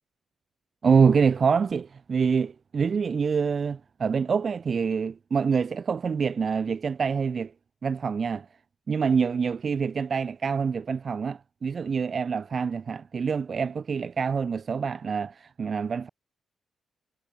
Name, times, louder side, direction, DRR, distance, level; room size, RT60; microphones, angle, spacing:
voice 1, 0.8-7.5 7.8-8.5 8.9-16.1, right 6 dB, 35° right, 0.8 m, -26 dB
wide cardioid pair, 175°, 0 cm